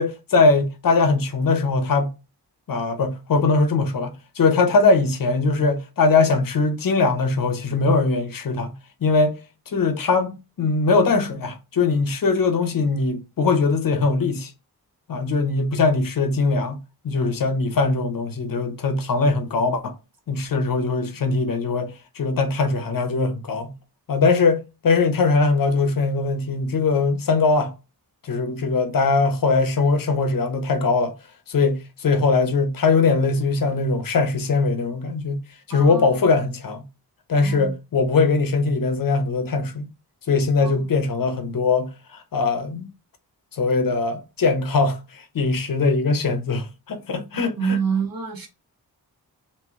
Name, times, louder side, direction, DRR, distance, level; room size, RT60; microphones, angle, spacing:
voice 1, 0.0-2.1 2.7-8.7 9.0-9.4 9.7-14.5 15.1-16.8 17.0-19.9 20.3-23.7 24.1-27.7 28.2-31.1 31.5-35.4 35.7-36.8 37.3-39.9 40.3-42.9 43.5-47.8, left 4 dB, 60° left, 0.7 m, -21 dB
voice 2, 35.7-36.2 37.4-37.7 40.6-40.7 47.6-48.5, right 6 dB, 60° right, 1.2 m, -27 dB
3.0 x 2.9 x 3.5 m
wide cardioid pair, 160°, 38 cm